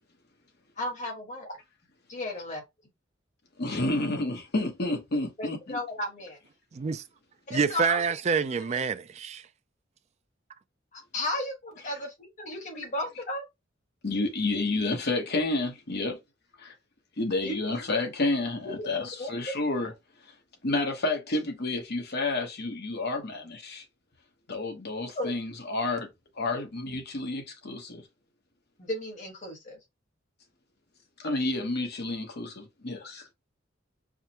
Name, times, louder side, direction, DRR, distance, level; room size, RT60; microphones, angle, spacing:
voice 1, 0.8-1.6 2.1-2.6 5.4-6.4 7.5-8.0 8.6-8.8 10.9-13.4 17.4-17.6 18.9-19.6 25.1-25.3 28.8-29.8, left 1 dB, 40° left, 1.4 m, -34 dB
voice 2, 3.6-5.8 14.0-16.2 16.6-16.7 17.2-19.9 20.6-23.8 24.5-26.1 26.4-28.0 31.2-33.3, left 2 dB, 55° left, 1.1 m, -30 dB
voice 3, 6.7-7.0 7.5-9.5, right 5 dB, 35° right, 0.3 m, -27 dB
4.8 x 2.1 x 2.9 m
head